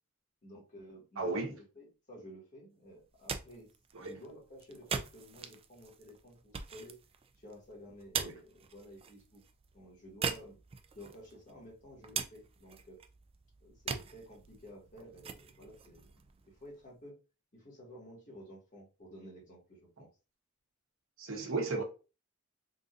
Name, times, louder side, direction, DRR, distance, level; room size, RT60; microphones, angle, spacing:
voice 1, 0.4-3.7 4.0-7.0 7.3-9.4 9.7-10.6 10.9-13.0 13.6-16.1 16.5-17.2 17.5-20.1, equal, 40° left, 1.7 m, -52 dB
voice 2, 1.2-1.6 3.9-4.1 8.2-8.3 21.2-21.8, right 3 dB, 85° right, 1.0 m, -35 dB
sound 1, 3.0-17.0, right 6 dB, 30° right, 0.3 m, -43 dB
3.8 x 2.6 x 2.5 m
head